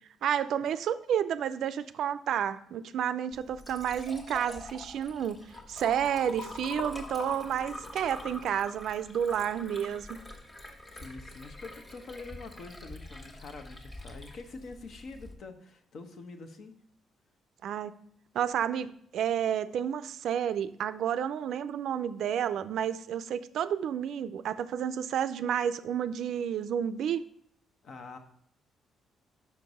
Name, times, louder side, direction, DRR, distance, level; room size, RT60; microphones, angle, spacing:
voice 1, 0.2-5.4 5.7-10.2 17.6-17.9 18.3-27.2, right 9 dB, 75° right, 13 dB, 0.3 m, -30 dB
Liquid, 3.3-15.3, left 2 dB, 30° left, 1.4 m, -45 dB
voice 2, 10.9-16.7 27.8-28.2, left 3 dB, 65° left, 7 dB, 0.9 m, -45 dB
5.8 x 4.6 x 5.3 m, 0.67 s
cardioid pair, 90°, 0 cm